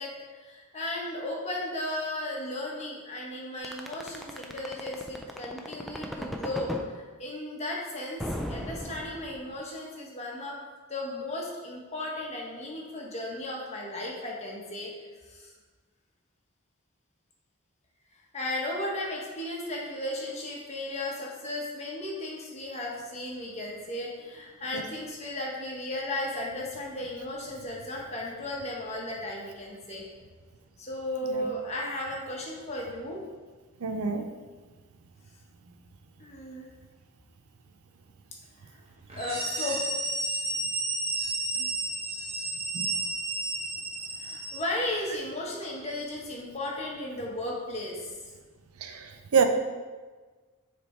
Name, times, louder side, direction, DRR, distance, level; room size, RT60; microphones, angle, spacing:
voice 1, 0.0-10.6 10.9-14.9 15.2-15.5 18.3-30.0 30.8-33.3 36.2-36.7 38.7-38.8 39.1-39.9 41.5-41.7 43.7-43.8 44.2-48.2, left 1 dB, 30° left, -2 dB, 1.1 m, -35 dB
sound 1, 3.6-6.9 8.2-9.6, equal, ahead, 0.4 m, -35 dB
voice 2, 33.8-34.2 42.7-42.9 48.8-49.4, right 6 dB, 85° right, 7 dB, 0.6 m, -26 dB
sound 2, 39.1-44.8, right 2 dB, 25° right, 0.9 m, -32 dB
6.8 x 3.4 x 4.3 m, 1.4 s
head